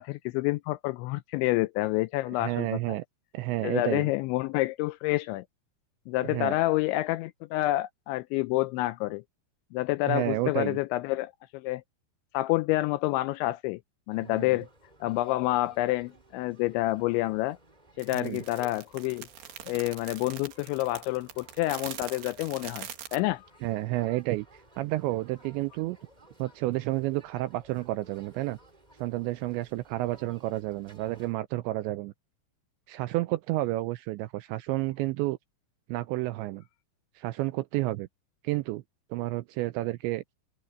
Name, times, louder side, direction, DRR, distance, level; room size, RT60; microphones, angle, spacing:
voice 1, 0.0-3.0 3.6-5.5 6.1-9.2 9.7-11.8 12.3-13.8 14.1-14.7 15.0-17.6 18.0-19.3 19.6-23.5, left 18 dB, 85° left, 2.6 m, -28 dB
voice 2, 2.4-3.0 3.3-4.1 6.3-6.6 10.1-10.8 14.2-14.6 18.1-18.4 23.6-24.5 24.8-26.0 26.4-28.6 29.0-32.1 32.9-35.4 35.9-36.6 37.2-38.1 38.4-38.8 39.1-40.2, right 18 dB, 85° right, 2.6 m, -30 dB
sound 1, 14.1-31.3, right 1 dB, 10° right, 2.8 m, -57 dB
sound 2, 18.0-23.2, right 10 dB, 60° right, 3.5 m, -42 dB
omnidirectional pair, 5.8 m